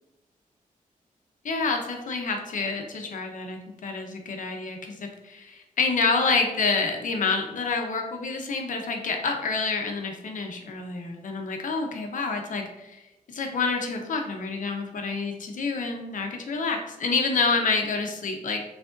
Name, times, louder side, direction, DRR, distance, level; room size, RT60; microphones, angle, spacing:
voice 1, 1.4-13.0 13.3-18.6, left 4 dB, 65° left, 3 dB, 0.8 m, -28 dB
6.2 x 3.4 x 2.5 m, 1.0 s
wide cardioid pair, 155°, 14 cm